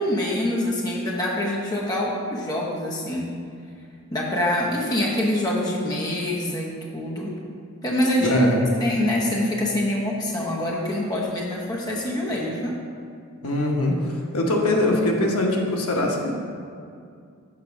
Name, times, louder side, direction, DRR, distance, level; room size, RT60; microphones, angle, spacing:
voice 1, 0.0-3.3 4.1-7.3 7.8-8.4 8.8-12.8, left 1 dB, 15° left, -4 dB, 0.8 m, -25 dB
voice 2, 8.2-8.6 13.4-16.3, left 1 dB, 85° left, 0 dB, 1.0 m, -22 dB
7.1 x 4.0 x 5.9 m, 2.3 s
head